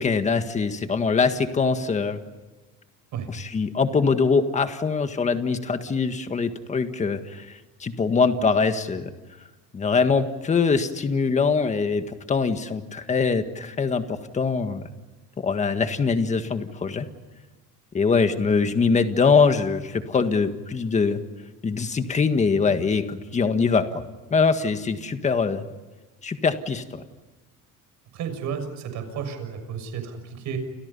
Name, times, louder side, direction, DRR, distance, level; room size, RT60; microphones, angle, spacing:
voice 1, 0.0-2.2 3.3-9.1 9.7-14.8 15.4-17.1 17.9-21.2 21.6-23.9 24.3-25.6 26.2-27.0, left 5 dB, 20° left, 8 dB, 1.7 m, -23 dB
voice 2, 28.1-30.6, right 7 dB, 55° right, 8 dB, 6.4 m, -32 dB
29.5 x 29.0 x 5.5 m, 1.2 s
cardioid pair, 165°, 35 cm